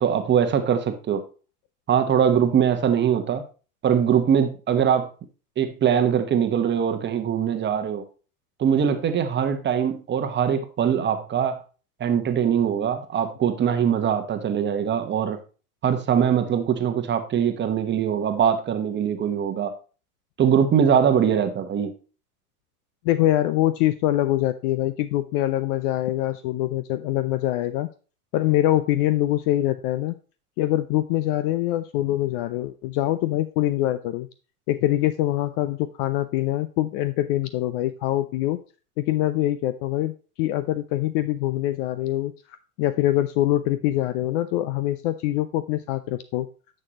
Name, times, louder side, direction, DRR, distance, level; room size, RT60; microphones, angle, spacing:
voice 1, 0.0-1.2 1.9-3.4 3.8-5.1 5.6-8.0 8.6-11.6 12.0-15.4 15.8-19.7 20.4-21.9, right 8 dB, 25° right, 8 dB, 1.1 m, -22 dB
voice 2, 23.0-27.9 28.3-30.2 30.6-34.3 34.7-38.6 39.0-42.3 42.8-46.5, left 14 dB, 40° left, 13 dB, 0.4 m, -24 dB
9.6 x 6.6 x 2.9 m, 0.35 s
hypercardioid pair, 100°, 46 cm